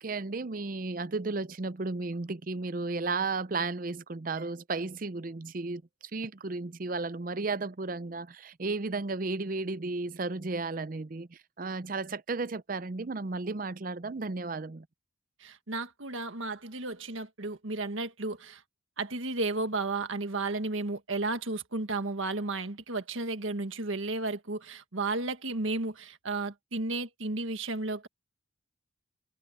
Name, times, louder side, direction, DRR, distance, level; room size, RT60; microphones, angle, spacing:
voice 1, 0.0-5.8 6.1-14.9, right 3 dB, 45° right, 0.6 m, -34 dB
voice 2, 15.4-18.6 19.0-28.1, right 3 dB, 85° right, 1.7 m, -33 dB
head